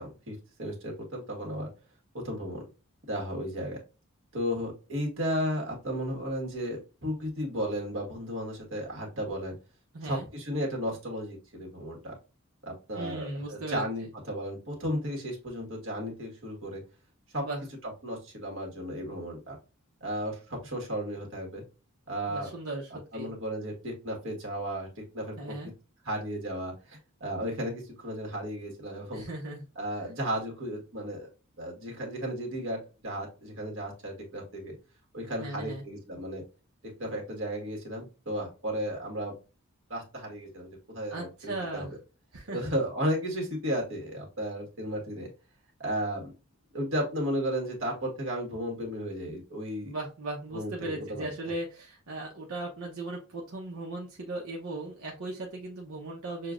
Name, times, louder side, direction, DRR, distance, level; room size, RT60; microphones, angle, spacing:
voice 1, 0.0-1.7 2.1-2.6 3.1-3.8 4.3-9.5 10.0-12.1 12.6-16.8 17.3-17.4 17.8-19.6 20.0-21.6 22.1-22.5 22.9-25.3 26.0-29.2 29.7-31.3 31.6-34.7 35.1-36.4 36.8-39.3 39.9-42.0 42.5-45.3 45.8-46.3 46.7-49.9 50.5-51.3, equal, 65° right, 0 dB, 1.6 m, -34 dB
voice 2, 9.9-10.3 12.9-13.8 17.4-17.6 22.3-23.3 25.4-25.7 29.1-29.6 35.4-35.8 41.1-41.9 42.3-42.6 49.8-56.5, right 2 dB, 90° right, -2 dB, 0.9 m, -37 dB
6.6 x 2.3 x 2.5 m, 0.32 s
head